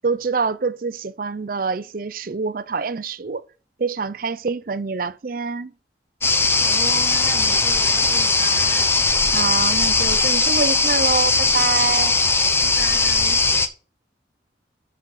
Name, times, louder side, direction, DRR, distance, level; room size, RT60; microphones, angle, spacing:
voice 1, 0.0-3.4 3.8-5.7 9.3-12.2, right 4 dB, 50° right, 0.5 m, -25 dB
sound 1, 6.2-13.7, left 3 dB, 15° left, 0.7 m, -19 dB
voice 2, 6.5-8.9 12.6-13.4, left 1 dB, 55° left, 2.7 m, -34 dB
12.5 x 6.2 x 4.2 m
head